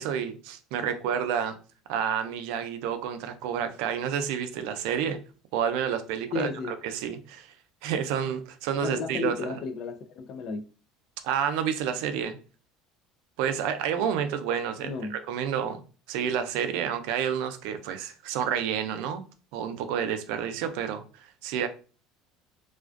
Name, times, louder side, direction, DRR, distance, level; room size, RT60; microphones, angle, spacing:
voice 1, 0.0-1.6 1.9-5.2 5.5-7.5 7.8-9.6 11.2-12.4 13.4-15.8 16.1-19.2 19.5-21.7, right 8 dB, 75° right, 0.4 m, -29 dB
voice 2, 6.3-6.7 8.8-10.6 14.8-15.2, left 4 dB, 50° left, 0.3 m, -33 dB
2.4 x 2.2 x 2.3 m
cardioid pair, 130°, 0 cm